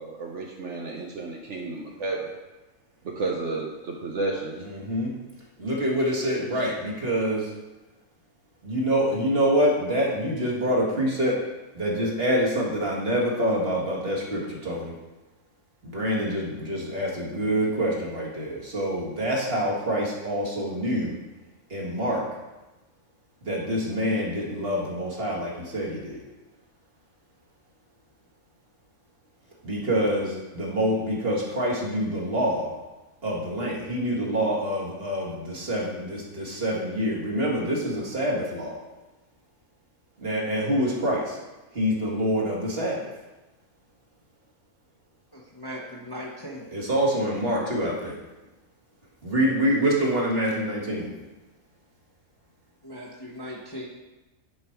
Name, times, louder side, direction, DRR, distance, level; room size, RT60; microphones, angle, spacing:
voice 1, 0.0-2.3 3.0-4.5, right 3 dB, 60° right, -1 dB, 1.2 m, -31 dB
voice 2, 4.6-5.1 5.6-7.5 8.6-11.4 11.7-14.9 15.8-21.1 21.7-22.3 23.4-26.2 29.6-32.8 33.2-38.8 40.2-41.4 41.7-43.1 46.7-48.2 49.2-51.1, equal, 45° right, -4 dB, 2.1 m, -26 dB
voice 3, 45.3-46.7 52.8-53.9, equal, 20° left, -4 dB, 1.2 m, -38 dB
10.0 x 5.2 x 4.6 m, 1.1 s
omnidirectional pair, 1.5 m